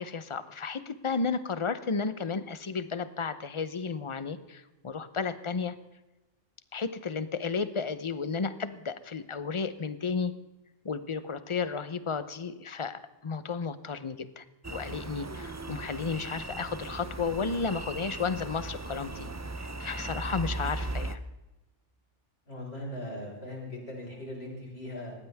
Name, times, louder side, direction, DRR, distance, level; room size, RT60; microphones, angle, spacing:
voice 1, 0.0-5.7 6.7-10.3 10.8-19.3 19.6-21.2, left 5 dB, 30° left, 13 dB, 0.7 m, -33 dB
sound 1, 14.6-21.2, right 2 dB, 20° right, 0.5 m, -38 dB
voice 2, 22.5-25.1, left 1 dB, 55° left, -3 dB, 5.8 m, -39 dB
20.0 x 15.0 x 3.5 m, 1.0 s
omnidirectional pair, 1.3 m